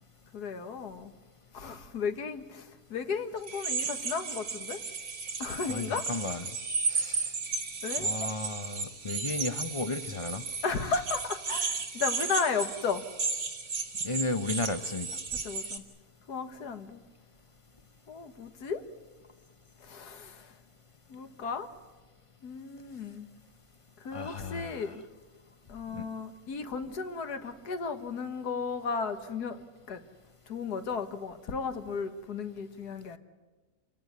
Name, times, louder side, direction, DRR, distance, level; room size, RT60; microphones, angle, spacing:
voice 1, 0.3-1.1 1.5-4.8 5.4-6.1 7.8-8.1 10.6-13.0 15.3-15.8 16.3-17.0 18.1-18.8 19.8-20.5 21.1-21.7 22.4-23.3 24.0-25.0 25.7-30.0 30.5-33.2, left 5 dB, 80° left, 2.0 m, -34 dB
sound 1, 3.4-15.8, right 4 dB, 85° right, 2.5 m, -34 dB
voice 2, 5.7-6.5 6.9-7.3 8.0-10.4 14.0-15.1 24.1-24.9 25.9-26.0, left 3 dB, 30° left, 0.6 m, -34 dB
28.5 x 16.5 x 9.6 m
omnidirectional pair, 1.7 m